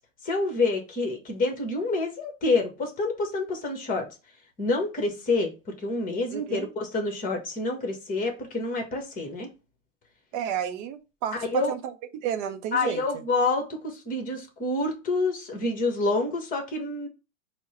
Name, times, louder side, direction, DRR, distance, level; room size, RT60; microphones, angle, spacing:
voice 1, 0.2-4.1 4.6-5.5 5.8-9.5 11.4-11.7 12.7-17.1, left 3 dB, 20° left, 1.3 m, -27 dB
voice 2, 6.3-6.7 10.3-11.8 12.1-13.0, right 9 dB, 30° right, 0.6 m, -31 dB
4.5 x 2.2 x 4.2 m
hypercardioid pair, 120°, 41 cm